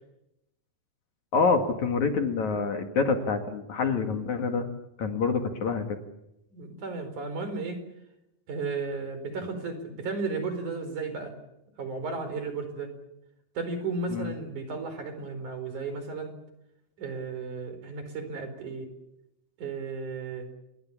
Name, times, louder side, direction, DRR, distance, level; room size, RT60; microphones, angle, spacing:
voice 1, 1.3-4.7 5.0-6.0 14.1-14.3, left 4 dB, 55° left, 6 dB, 3.1 m, -26 dB
voice 2, 6.5-7.8 8.5-11.3 11.8-12.9 13.6-16.3 17.0-18.9 19.6-20.5, right 4 dB, 50° right, 9 dB, 5.9 m, -34 dB
28.0 x 22.5 x 7.2 m, 0.85 s
omnidirectional pair, 4.4 m